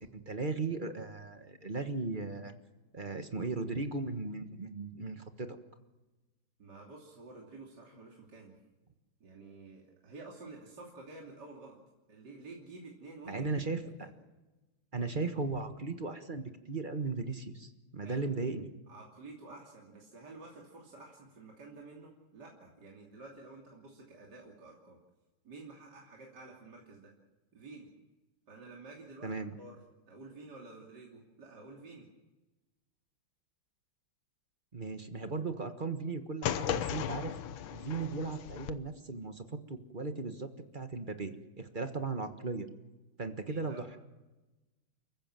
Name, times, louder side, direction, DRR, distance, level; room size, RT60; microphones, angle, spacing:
voice 1, 0.0-2.5 2.9-5.6 13.2-13.8 14.9-18.7 29.2-29.6 34.7-37.3 37.7-42.7 43.2-44.0, right 3 dB, 30° right, 7 dB, 1.3 m, -37 dB
voice 2, 6.6-8.6 9.2-11.8 12.1-13.5 14.0-14.1 18.0-18.3 18.9-25.0 25.4-27.1 27.5-27.9 28.5-29.3 29.6-29.8 30.1-32.1 43.5-43.8, right 3 dB, 55° right, -2 dB, 3.5 m, -50 dB
sound 1, 36.4-38.7, left 10 dB, 80° left, 1.7 m, -36 dB
29.5 x 15.0 x 7.6 m, 1.1 s
omnidirectional pair, 2.2 m